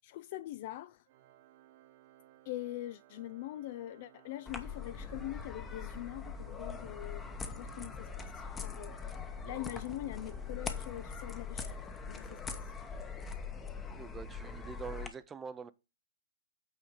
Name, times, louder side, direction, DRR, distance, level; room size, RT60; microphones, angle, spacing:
voice 1, 0.0-1.0 2.5-8.9 9.4-12.7, left 15 dB, 40° left, 0.4 m, -43 dB
Organ, 1.1-11.9, right 13 dB, 40° right, 1.1 m, -61 dB
sound 1, 4.5-15.1, left 5 dB, 10° left, 0.9 m, -42 dB
voice 2, 14.0-15.7, right 6 dB, 10° right, 0.6 m, -44 dB
8.7 x 3.8 x 5.2 m
hypercardioid pair, 150°, 0 cm